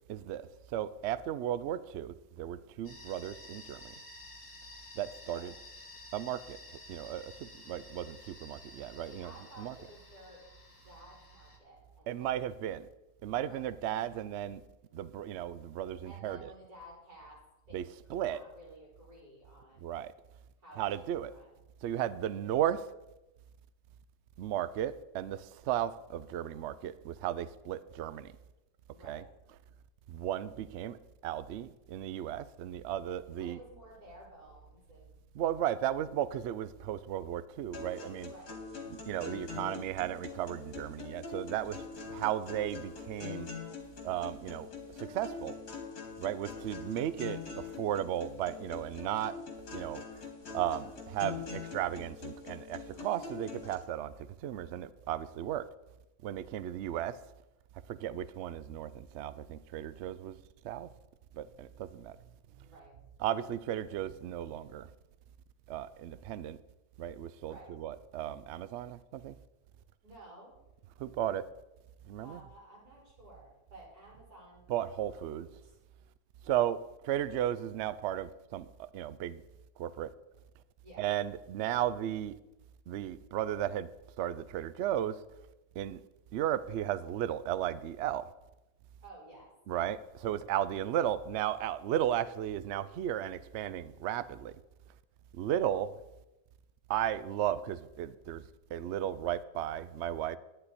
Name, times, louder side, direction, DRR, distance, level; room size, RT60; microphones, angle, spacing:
voice 1, 0.1-3.9 5.0-5.5 6.1-6.6 6.9-9.3 9.6-9.7 12.1-12.9 13.2-14.6 14.9-16.5 17.7-17.8 18.1-18.4 19.8-20.1 20.8-21.3 21.8-22.9 24.4-28.3 29.1-29.2 30.1-31.0 31.2-33.6 35.3-38.3 38.9-43.5 44.0-44.7 45.0-45.6 46.2-49.3 49.7-50.0 50.5-54.1 54.4-55.6 56.2-57.2 57.9-60.4 60.6-60.9 61.3-62.2 63.2-64.9 65.7-66.6 67.0-69.3 71.0-71.5 72.1-72.4 74.7-75.5 76.4-79.4 79.8-80.1 81.0-82.4 82.9-83.9 84.2-85.2 85.8-86.0 86.3-88.3 89.7-94.6 95.3-95.9 96.9-98.4 98.7-100.4, right 11 dB, 85° right, 0.6 m, -35 dB
sound 1, 2.8-11.6, left 2 dB, 25° left, 1.4 m, -52 dB
voice 2, 9.0-10.4 10.8-12.4 13.5-14.2 16.0-17.4 17.7-19.9 20.6-20.8 21.1-21.5 28.9-29.2 33.4-35.2 38.3-38.6 49.0-49.3 62.6-62.9 67.4-67.7 70.0-70.5 72.2-75.8 80.8-81.0 89.0-89.9, right 1 dB, 65° right, 5.7 m, -54 dB
sound 2, 37.7-53.7, left 5 dB, 75° left, 2.4 m, -44 dB
11.5 x 9.9 x 4.2 m
omnidirectional pair, 1.7 m